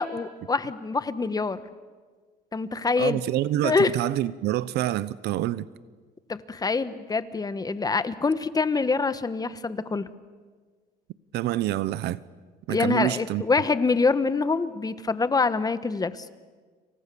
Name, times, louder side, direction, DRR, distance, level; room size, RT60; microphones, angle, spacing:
voice 1, 0.0-1.6 2.5-3.2 3.6-3.9 6.3-10.1 12.7-16.3, left 4 dB, 20° left, 1.4 m, -25 dB
voice 2, 3.0-5.7 11.3-12.2 12.7-13.4, right 14 dB, 80° right, 1.0 m, -27 dB
30.0 x 27.5 x 7.1 m
cardioid pair, 110°, 17 cm